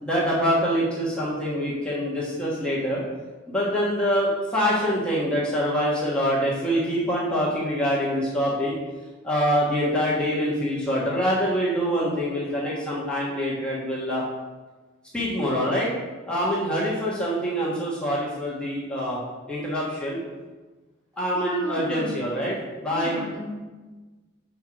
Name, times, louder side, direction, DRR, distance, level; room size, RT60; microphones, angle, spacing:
voice 1, 0.0-3.0 3.5-8.7 9.2-14.2 15.1-15.9 16.3-19.2 19.5-20.2 21.2-23.2, equal, 5° left, -7 dB, 1.3 m, -25 dB
voice 2, 21.3-22.3 22.9-23.5, equal, 20° right, -4 dB, 1.6 m, -33 dB
6.1 x 4.6 x 6.1 m, 1.3 s
head